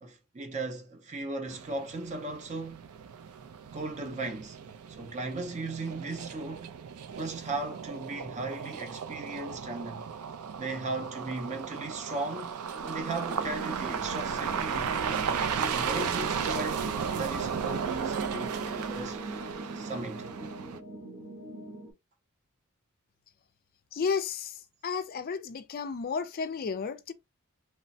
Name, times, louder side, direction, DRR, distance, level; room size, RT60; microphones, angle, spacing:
voice 1, 0.0-2.9 3.7-4.6 4.9-6.7 7.2-10.2 10.6-12.5 12.8-15.3 15.7-16.9 17.2-19.2 19.7-20.3, right 2 dB, 30° right, 0.5 m, -37 dB
sound 1, 1.5-20.8, right 7 dB, 80° right, 0.4 m, -35 dB
sound 2, 12.7-21.9, right 2 dB, 60° right, 1.2 m, -41 dB
voice 2, 23.9-24.5 24.8-27.1, left 5 dB, 40° left, 0.3 m, -32 dB
3.1 x 2.1 x 2.6 m
head